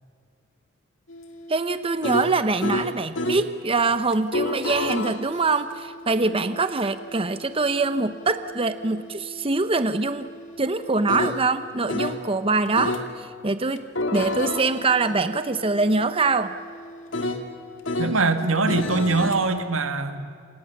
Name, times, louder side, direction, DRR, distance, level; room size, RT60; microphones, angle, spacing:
sound 1, 1.1-3.5 4.1-12.2 12.8-13.1 13.8-18.2 18.7-19.4, left 1 dB, 65° left, 2.6 m, -32 dB
voice 1, 1.5-10.3 10.6-16.5, right 3 dB, 25° right, 11 dB, 0.8 m, -24 dB
voice 2, 18.0-20.2, right 3 dB, 90° right, 8 dB, 2.2 m, -22 dB
28.5 x 27.5 x 7.3 m, 2.2 s
head